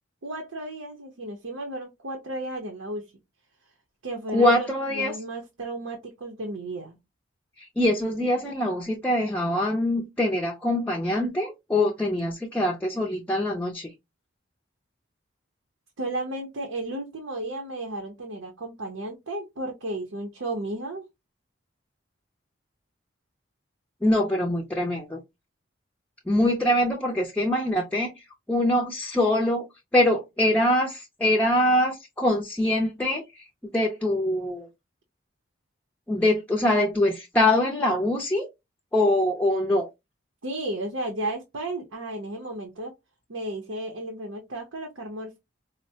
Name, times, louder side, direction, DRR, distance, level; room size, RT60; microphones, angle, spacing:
voice 1, 0.2-3.1 4.0-7.0 16.0-21.0 40.4-42.9 43.3-45.4, right 1 dB, 90° right, 0.7 m, -33 dB
voice 2, 4.3-5.1 7.8-13.9 24.0-25.2 26.3-28.1 28.5-29.7 29.9-33.2 33.7-34.7 36.1-38.5 38.9-39.9, left 1 dB, 10° left, 0.4 m, -23 dB
4.3 x 2.1 x 2.7 m
head